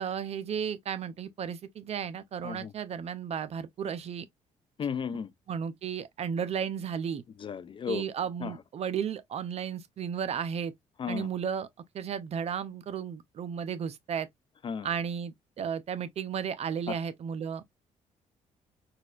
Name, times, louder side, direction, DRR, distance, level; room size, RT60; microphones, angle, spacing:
voice 1, 0.0-4.3 5.5-7.2 7.9-10.7 11.1-11.7 11.9-14.3 14.8-17.6, right 7 dB, 50° right, 0.5 m, -34 dB
voice 2, 4.8-5.3 7.4-8.1 8.4-8.5 11.0-11.3 14.6-14.9 16.9-17.0, left 6 dB, 40° left, 0.4 m, -34 dB
4.1 x 2.3 x 2.4 m
cardioid pair, 95°, 13 cm